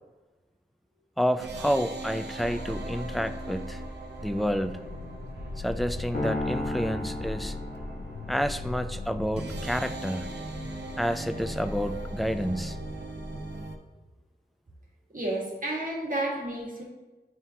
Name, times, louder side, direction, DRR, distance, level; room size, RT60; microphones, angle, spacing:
voice 1, 1.2-3.8 4.2-4.8 5.6-7.6 8.3-10.3 11.0-12.8, equal, ahead, 10 dB, 0.3 m, -29 dB
sound 1, 1.4-13.8, right 1 dB, 80° right, 0.7 m, -38 dB
Accelerating revving vroom, 4.4-11.0, left 3 dB, 75° left, 0.5 m, -42 dB
sound 2, 6.1-8.5, left 2 dB, 55° left, 1.5 m, -33 dB
voice 2, 15.1-16.8, right 1 dB, 50° right, -4 dB, 1.7 m, -31 dB
9.2 x 3.7 x 2.8 m, 1.2 s
wide cardioid pair, 65°, 17 cm